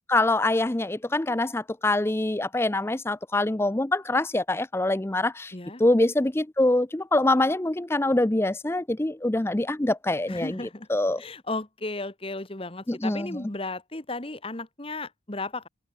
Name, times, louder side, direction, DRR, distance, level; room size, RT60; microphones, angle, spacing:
voice 1, 0.1-5.5 5.8-10.6 10.9-11.2 12.9-13.4, left 2 dB, 15° left, 0.5 m, -24 dB
voice 2, 5.5-5.8 10.3-10.9 11.2-15.7, left 2 dB, 30° left, 1.6 m, -35 dB
head